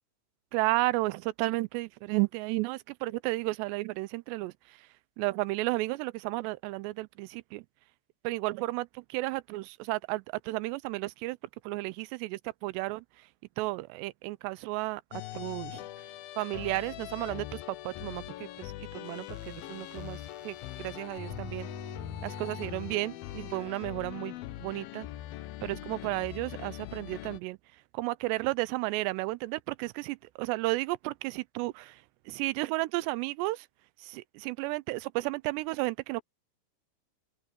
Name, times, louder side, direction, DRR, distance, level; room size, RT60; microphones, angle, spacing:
voice 1, 0.5-4.5 5.2-7.6 8.2-11.4 11.7-13.0 13.6-15.0 15.3-15.8 16.4-20.2 20.4-21.7 22.2-25.1 25.6-27.6 27.9-32.0 32.3-33.7 34.0-36.2, right 21 dB, 90° right, 2.8 m, -33 dB
sound 1, 15.1-27.4, left 14 dB, 75° left, 2.4 m, -42 dB
sound 2, 19.0-23.0 23.7-23.8, left 4 dB, 45° left, 5.4 m, -45 dB
open air
omnidirectional pair, 4.8 m